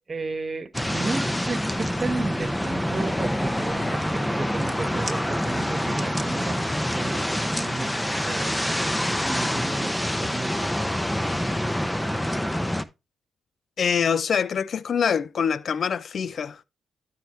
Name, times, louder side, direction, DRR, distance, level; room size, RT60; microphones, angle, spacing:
voice 1, 0.0-8.9 9.2-11.0, right 3 dB, 40° right, 1.4 m, -34 dB
sound 1, 0.7-12.8, equal, 10° left, 0.9 m, -26 dB
voice 2, 13.8-16.6, left 7 dB, 60° left, 0.4 m, -24 dB
12.5 x 4.7 x 3.3 m
supercardioid pair, 55°, 0 cm